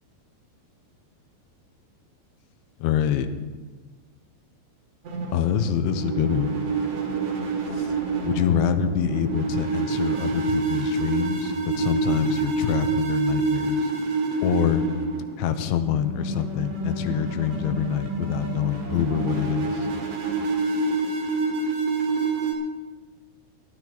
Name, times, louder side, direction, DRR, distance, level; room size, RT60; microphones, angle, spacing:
voice 1, 2.8-3.3 5.3-6.5 7.7-7.9 8.2-13.9 14.4-14.9 15.4-19.9, left 9 dB, 85° left, 10 dB, 3.2 m, -26 dB
sound 1, 5.0-22.5, right 3 dB, 50° right, 3.4 m, -27 dB
20.0 x 12.0 x 4.0 m, 1.3 s
omnidirectional pair, 5.2 m